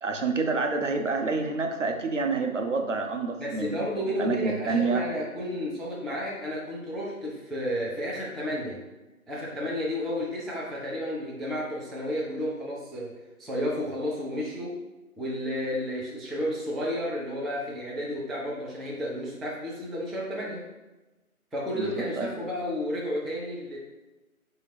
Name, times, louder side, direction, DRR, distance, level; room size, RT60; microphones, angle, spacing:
voice 1, 0.0-5.0 21.8-22.3, right 4 dB, 55° right, 4 dB, 0.6 m, -28 dB
voice 2, 3.4-8.8 9.3-13.1 13.4-14.7 15.2-20.6 21.5-23.8, equal, ahead, -6 dB, 0.4 m, -32 dB
4.0 x 2.8 x 4.2 m, 1.1 s
figure-of-eight pair, 145°, 44 cm